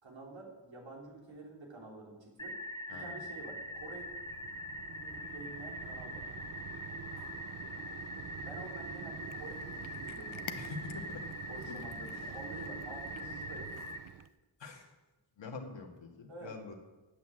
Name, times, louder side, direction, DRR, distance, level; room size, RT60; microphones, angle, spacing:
voice 1, 0.0-2.6 2.9-4.1 4.8-6.2 8.4-10.5 11.5-13.7 16.3-16.6, right 2 dB, 70° right, -2 dB, 3.6 m, -48 dB
sound 1, 2.4-14.0, left 1 dB, 10° left, 1.0 m, -43 dB
Mechanisms, 3.3-14.3, right 9 dB, 45° right, 0.5 m, -48 dB
Cat, 9.1-14.4, left 8 dB, 85° left, 0.9 m, -52 dB
voice 2, 10.6-11.3 11.6-11.8 12.1-12.3 14.6-14.9 15.4-16.7, left 4 dB, 65° left, 2 dB, 1.8 m, -45 dB
9.4 x 8.2 x 7.8 m, 1.1 s
wide cardioid pair, 95°, 47 cm